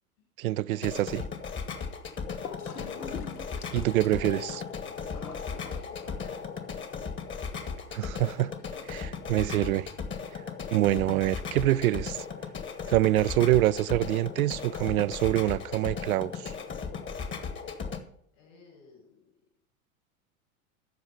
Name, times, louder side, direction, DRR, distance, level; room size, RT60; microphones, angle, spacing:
voice 1, 0.4-1.2 3.7-4.6 7.9-8.5 8.9-9.9 10.7-12.2 12.9-16.5, right 15 dB, 70° right, 0.5 m, -25 dB
sound 1, 0.7-18.0, left 5 dB, 25° left, 1.4 m, -37 dB
Gurgling / Toilet flush, 2.4-6.4, left 6 dB, 90° left, 0.9 m, -44 dB
voice 2, 5.0-6.9 8.4-9.2 18.3-19.3, left 4 dB, 60° left, 5.5 m, -57 dB
13.0 x 4.9 x 6.8 m
hypercardioid pair, 90°, 43 cm